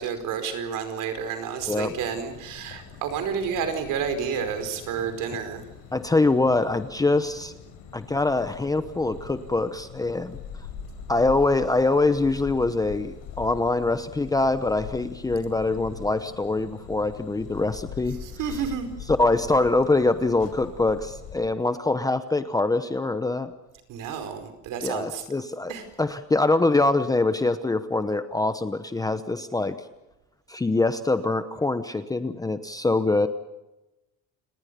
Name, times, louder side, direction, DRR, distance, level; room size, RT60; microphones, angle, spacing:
voice 1, 0.0-5.6 18.2-18.9 23.9-25.2 25.7-25.9, right 7 dB, 60° right, 8 dB, 5.0 m, -30 dB
sound 1, 1.6-21.4, left 7 dB, 60° left, 7.6 m, -42 dB
voice 2, 5.9-7.5 7.9-10.4 11.1-18.2 19.2-23.5 24.8-25.7 26.0-29.8 30.5-33.3, left 2 dB, 10° left, 10 dB, 0.9 m, -24 dB
29.5 x 19.5 x 6.9 m, 0.98 s
cardioid pair, 155°, 36 cm